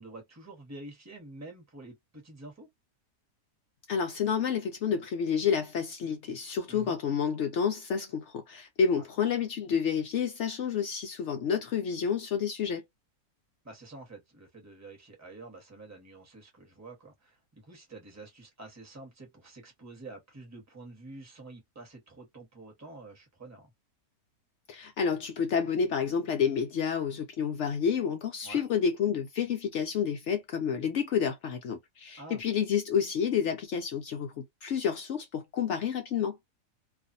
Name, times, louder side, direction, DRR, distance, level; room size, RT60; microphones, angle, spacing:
voice 1, 0.0-2.7 6.7-7.0 8.9-9.0 13.6-23.7 28.4-28.6 32.2-32.4, right 2 dB, 10° right, 0.9 m, -48 dB
voice 2, 3.9-12.8 24.7-36.4, left 7 dB, 75° left, 0.6 m, -29 dB
2.5 x 2.3 x 2.5 m
omnidirectional pair, 1.7 m